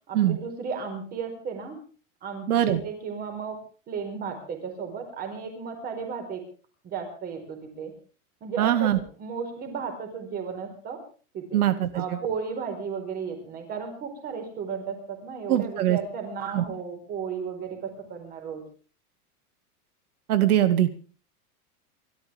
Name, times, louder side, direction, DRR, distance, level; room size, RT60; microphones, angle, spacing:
voice 1, 0.1-1.8 2.2-6.4 6.8-7.9 8.4-11.0 11.3-11.6 11.9-18.6, right 6 dB, 20° right, 5 dB, 4.7 m, -34 dB
voice 2, 2.5-2.8 8.6-9.0 11.5-12.0 15.5-16.0 16.5-16.6 20.3-20.9, right 12 dB, 80° right, 11 dB, 2.1 m, -22 dB
29.0 x 13.0 x 3.6 m, 0.40 s
supercardioid pair, 175°, 44 cm